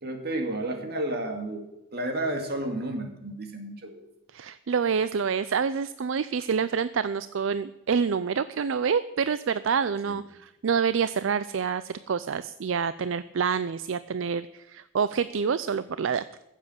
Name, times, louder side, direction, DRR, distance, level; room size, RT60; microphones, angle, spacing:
voice 1, 0.0-1.6 1.9-4.0 10.1-10.2, right 1 dB, 50° right, 4 dB, 2.3 m, -31 dB
voice 2, 4.3-16.2, right 6 dB, 65° right, 15 dB, 0.4 m, -27 dB
15.5 x 7.5 x 7.8 m, 0.95 s
head